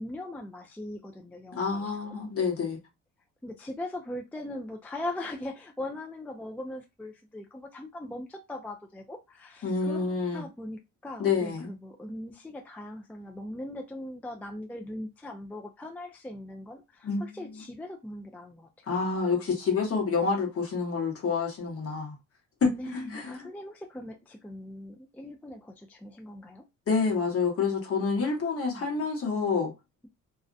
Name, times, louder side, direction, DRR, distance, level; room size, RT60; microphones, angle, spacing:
voice 1, 0.0-2.1 3.4-10.0 10.3-18.9 22.7-26.6 28.2-29.1, left 1 dB, 5° left, 0.3 m, -40 dB
voice 2, 1.5-2.8 9.6-10.5 11.2-11.7 17.0-17.4 18.9-22.1 22.6-23.4 26.9-29.7, left 5 dB, 50° left, 1.1 m, -28 dB
2.4 x 2.0 x 2.5 m
cardioid pair, 90°, 30 cm